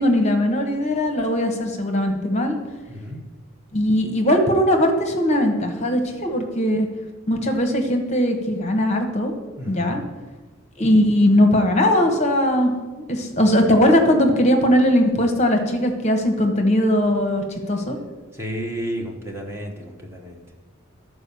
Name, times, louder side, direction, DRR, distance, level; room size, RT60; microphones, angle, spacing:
voice 1, 0.0-2.6 3.7-6.9 7.3-9.3 9.7-10.0 10.8-12.7 13.1-18.0, left 1 dB, 30° left, 4 dB, 1.0 m, -19 dB
voice 2, 2.9-3.2 9.6-10.0 18.3-20.4, equal, 10° right, 0 dB, 1.0 m, -32 dB
12.0 x 4.7 x 6.9 m, 1.3 s
head